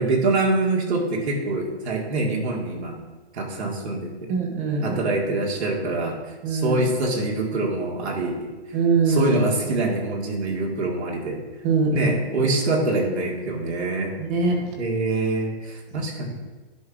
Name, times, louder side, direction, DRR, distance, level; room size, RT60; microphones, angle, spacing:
voice 1, 0.0-3.0 3.3-4.1 4.8-6.2 6.5-8.5 9.1-11.4 11.9-14.1 14.8-16.4, right 2 dB, 80° right, -2 dB, 1.9 m, -25 dB
voice 2, 4.3-5.0 6.4-6.8 8.7-9.3 11.6-12.1 12.4-12.5 14.2-14.8, right 4 dB, 20° right, 1 dB, 0.9 m, -22 dB
11.0 x 5.5 x 2.5 m, 1.3 s
hypercardioid pair, 155°, 32 cm